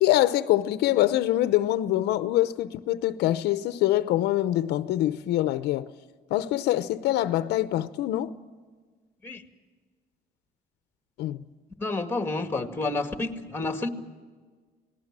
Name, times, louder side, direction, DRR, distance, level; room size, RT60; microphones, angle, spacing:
voice 1, 0.0-5.9 6.3-8.3 11.2-11.4, left 14 dB, 80° left, 0.8 m, -24 dB
voice 2, 11.8-13.9, left 2 dB, 15° left, 2.1 m, -29 dB
27.5 x 19.0 x 7.5 m
cardioid pair, 110°, 17 cm